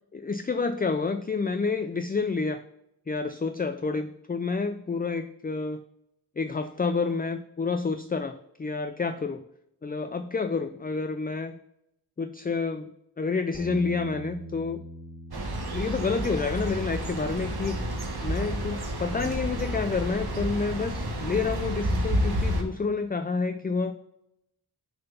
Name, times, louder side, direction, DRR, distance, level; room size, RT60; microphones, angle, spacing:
voice 1, 0.1-2.6 3.1-5.8 6.4-9.4 9.8-11.6 12.2-14.8 15.7-17.8 18.2-23.9, left 4 dB, 25° left, 9 dB, 0.4 m, -29 dB
Bass guitar, 13.5-19.8, right 2 dB, 5° right, 1.3 m, -43 dB
sound 1, 15.3-22.6, equal, 65° right, 1.3 m, -30 dB
6.7 x 3.9 x 5.5 m, 0.79 s
wide cardioid pair, 65°, 41 cm